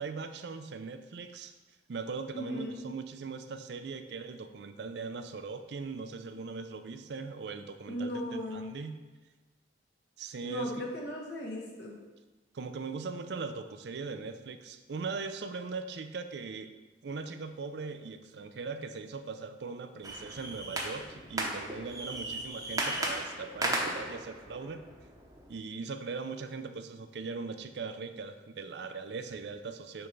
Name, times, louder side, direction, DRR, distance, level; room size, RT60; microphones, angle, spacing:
voice 1, 0.0-1.5 1.9-8.2 8.5-9.0 10.2-10.7 12.5-16.7 17.0-24.8 25.5-30.1, right 4 dB, 70° right, 9 dB, 0.4 m, -40 dB
voice 2, 2.3-2.8 7.9-8.7 10.4-11.9, equal, 65° left, -2 dB, 1.3 m, -37 dB
sound 1, 20.0-25.5, right 1 dB, 20° right, 0.8 m, -36 dB
6.9 x 3.4 x 5.2 m, 1.2 s
head